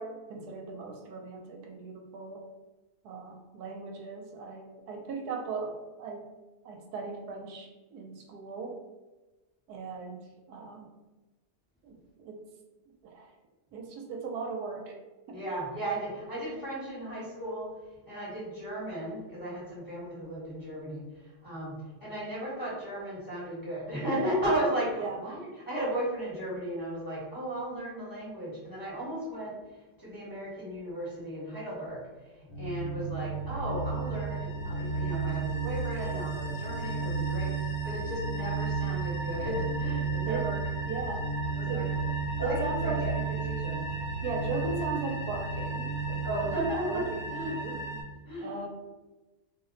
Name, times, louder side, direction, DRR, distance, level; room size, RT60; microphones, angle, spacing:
voice 1, 0.0-2.5 3.0-6.3 6.6-8.8 9.7-10.9 11.8-12.5 13.0-13.3 13.7-15.0 15.3-15.4 25.0-25.2 40.2-40.5 40.9-41.3 41.7-41.9 42.4-43.1 44.2-46.5 46.8-47.8 48.4-48.7, right 4 dB, 80° right, 2 dB, 1.1 m, -38 dB
voice 2, 15.3-17.8 18.1-21.0 21.4-25.4 25.7-29.5 30.0-32.1 32.6-40.6 41.5-41.9 42.4-43.9 46.2-47.8 48.3-48.7, right 1 dB, 15° left, -8 dB, 0.8 m, -35 dB
sound 1, 32.5-48.0, right 4 dB, 60° left, 0.7 m, -33 dB
2.7 x 2.1 x 3.7 m, 1.2 s
omnidirectional pair, 1.7 m